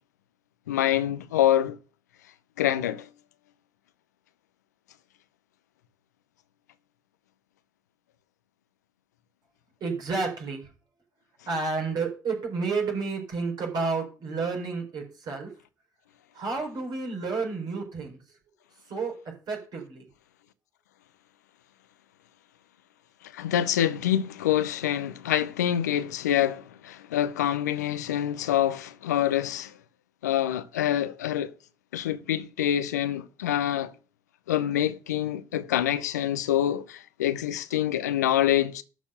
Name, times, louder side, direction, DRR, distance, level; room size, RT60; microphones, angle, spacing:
voice 1, 0.7-1.8 2.6-3.1 23.2-29.8 30.2-31.5 31.9-33.9 34.5-38.8, left 11 dB, 80° left, 0.7 m, -26 dB
voice 2, 9.8-10.7 11.4-15.5 16.3-18.2 18.9-19.1 19.5-20.0, right 4 dB, 50° right, 4.3 m, -30 dB
12.0 x 4.4 x 6.6 m
figure-of-eight pair, 50°, 9 cm